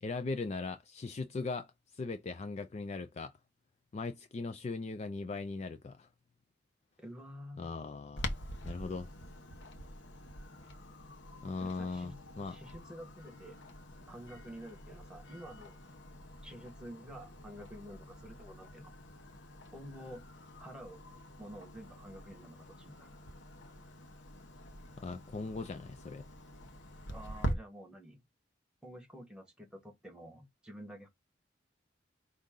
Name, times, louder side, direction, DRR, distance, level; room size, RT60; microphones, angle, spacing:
voice 1, 0.0-3.3 3.9-6.1 7.6-8.4 8.6-9.1 11.4-12.6 25.0-26.3, left 3 dB, 35° left, 0.3 m, -39 dB
voice 2, 7.0-7.7 11.6-12.2 12.4-13.6 14.1-15.8 16.4-18.9 19.7-20.2 20.6-21.0 21.4-23.1 27.1-28.2 28.8-31.1, equal, 5° right, 1.2 m, -49 dB
Clock, 8.2-27.5, equal, 75° left, 0.9 m, -46 dB
4.9 x 2.7 x 3.7 m
head